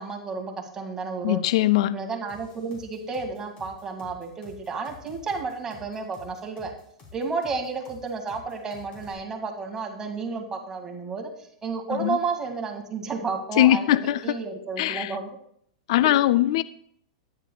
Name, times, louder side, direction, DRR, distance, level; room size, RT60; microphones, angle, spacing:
voice 1, 0.0-1.4 1.9-6.7 7.1-11.3 11.6-15.2, right 4 dB, 20° right, 1 dB, 2.0 m, -32 dB
voice 2, 1.2-2.0 11.9-12.2 13.6-14.4 14.8-15.2 15.9-16.6, left 14 dB, 60° left, 16 dB, 0.3 m, -21 dB
sound 1, 2.3-9.1, left 3 dB, 35° left, 3.1 m, -49 dB
13.5 x 9.9 x 2.3 m, 0.67 s
hypercardioid pair, 115°, 3 cm